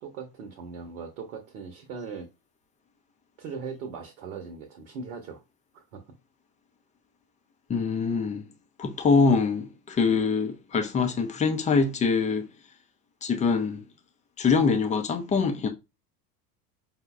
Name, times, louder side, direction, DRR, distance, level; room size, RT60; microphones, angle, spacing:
voice 1, 0.0-2.3 3.4-5.4 5.7-6.0, right 5 dB, 65° right, 0.9 m, -39 dB
voice 2, 7.7-8.4 8.8-12.4 13.2-13.8 14.4-15.7, left 5 dB, 15° left, 0.4 m, -24 dB
5.2 x 2.1 x 2.3 m
hypercardioid pair, 75°, 48 cm